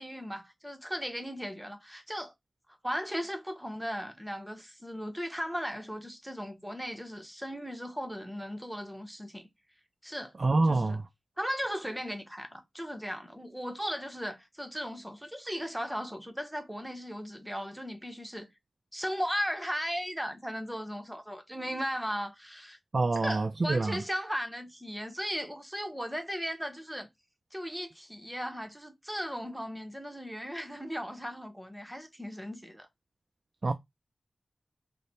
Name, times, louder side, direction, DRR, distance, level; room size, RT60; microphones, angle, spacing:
voice 1, 0.0-2.3 2.8-9.5 10.0-10.3 10.7-11.0 11.4-18.5 18.9-22.8 23.1-27.1 27.5-32.9, equal, 5° right, 0.8 m, -37 dB
voice 2, 10.4-11.0 22.9-24.0 33.6-33.7, right 3 dB, 50° right, 0.3 m, -26 dB
3.2 x 2.1 x 4.0 m
wide cardioid pair, 85°, 0 cm